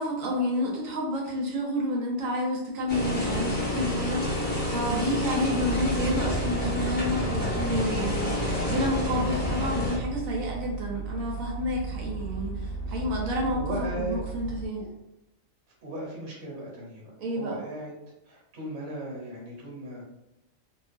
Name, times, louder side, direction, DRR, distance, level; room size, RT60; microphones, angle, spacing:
voice 1, 0.0-4.4 4.7-14.8 17.2-17.6, equal, 80° right, -2 dB, 1.1 m, -30 dB
sound 1, 2.9-9.9, left 1 dB, 10° left, 0.7 m, -29 dB
voice 2, 4.1-4.8 12.8-14.2 14.8-14.9 15.8-17.0 17.3-17.9 18.2-20.0, right 1 dB, 65° right, -4 dB, 1.3 m, -38 dB
sound 2, 5.6-14.7, right 4 dB, 60° left, 0.7 m, -35 dB
2.6 x 2.4 x 2.4 m, 0.90 s
omnidirectional pair, 1.4 m